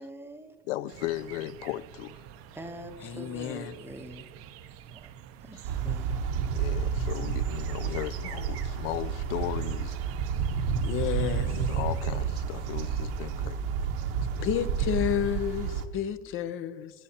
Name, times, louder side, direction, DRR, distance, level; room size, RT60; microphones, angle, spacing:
voice 1, 0.0-0.6 2.5-4.2 4.9-5.1 5.4-6.1, right 1 dB, 5° right, 0.8 m, -44 dB
voice 2, 0.7-2.2 5.5-5.8 6.5-10.1 11.5-13.6 14.4-14.5, left 14 dB, 80° left, 0.5 m, -36 dB
sound 1, 0.9-13.5, right 10 dB, 40° right, 0.7 m, -48 dB
voice 3, 3.0-3.8 10.8-11.6 14.4-16.9, left 10 dB, 35° left, 0.6 m, -31 dB
sound 2, 5.6-15.8, right 6 dB, 65° right, 1.1 m, -30 dB
22.5 x 9.9 x 2.8 m
supercardioid pair, 140°, 35 cm